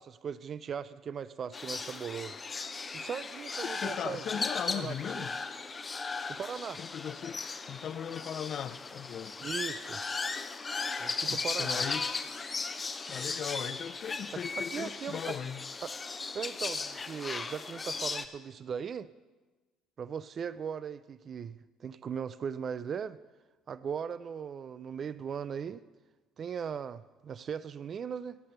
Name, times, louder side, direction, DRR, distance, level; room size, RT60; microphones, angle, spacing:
voice 1, 0.0-2.4 2.9-5.3 6.3-6.8 9.4-10.0 11.0-11.8 14.3-15.4 15.8-15.9 16.3-19.1 20.0-23.2 23.7-25.8 26.4-28.4, right 7 dB, 45° right, 0.4 m, -38 dB
sound 1, 1.5-18.2, left 4 dB, 30° left, 0.8 m, -37 dB
voice 2, 3.7-5.3 6.8-7.4 7.7-9.4 11.3-12.2 13.1-15.6, left 8 dB, 55° left, 0.4 m, -38 dB
15.5 x 5.8 x 6.6 m
hypercardioid pair, 65°, 0 cm